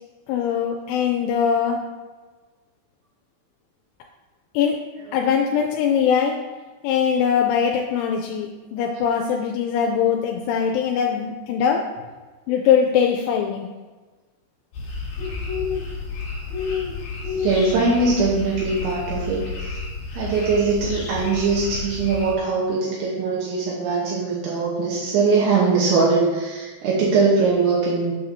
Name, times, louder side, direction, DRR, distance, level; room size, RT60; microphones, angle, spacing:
voice 1, 0.3-1.9 4.5-6.5 6.8-11.9 12.5-13.7, left 7 dB, 85° left, 1 dB, 2.9 m, -21 dB
sound 1, 14.7-22.3, left 5 dB, 60° left, 2.8 m, -30 dB
voice 2, 17.4-19.8 20.1-28.1, right 4 dB, 75° right, -5 dB, 3.0 m, -21 dB
8.8 x 5.9 x 2.6 m, 1.3 s
omnidirectional pair, 5.6 m